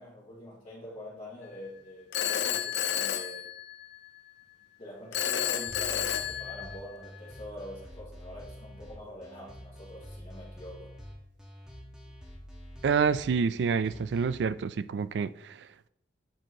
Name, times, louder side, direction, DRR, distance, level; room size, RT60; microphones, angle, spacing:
voice 1, 0.0-3.5 4.8-10.9, equal, 35° left, 2.2 m, -45 dB
Telephone, 2.1-4.1 5.1-7.1, left 10 dB, 70° left, 0.4 m, -31 dB
sound 1, 5.7-14.4, equal, 5° right, 1.2 m, -47 dB
voice 2, 12.8-15.9, right 6 dB, 70° right, 0.3 m, -28 dB
8.9 x 4.5 x 2.9 m
head